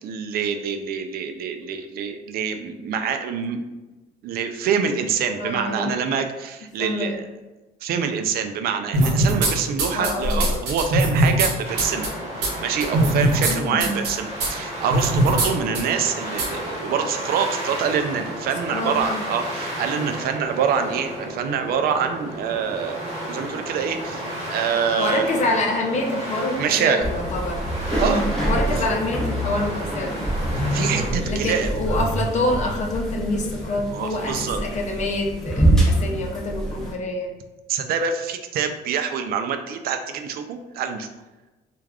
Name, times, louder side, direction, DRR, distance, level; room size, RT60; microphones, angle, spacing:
voice 1, 0.0-3.6 4.2-7.2 7.8-12.1 12.3-25.4 26.6-27.1 27.9-28.2 28.8-28.9 30.7-31.7 33.9-34.6 37.7-41.1, right 7 dB, 65° right, 7 dB, 0.4 m, -25 dB
voice 2, 5.3-6.0 6.8-7.2 9.9-10.4 13.4-14.0 15.7-15.8 18.7-19.2 25.0-27.6 28.0-30.2 31.2-37.3, left 2 dB, 45° left, 1 dB, 0.5 m, -27 dB
sound 1, 8.9-9.5 9.8-11.5 11.8-12.1 12.4-12.5 12.8-13.5 13.8-14.1 14.4-14.5 14.9-15.5 15.8-15.9 16.4-16.5, right 1 dB, 85° right, 0.8 m, -20 dB
sound 2, 11.6-31.1, equal, 35° right, 1.0 m, -33 dB
sound 3, 27.0-36.9, right 1 dB, 5° left, 0.8 m, -25 dB
3.3 x 2.4 x 2.3 m, 1.1 s
cardioid pair, 110°, 17 cm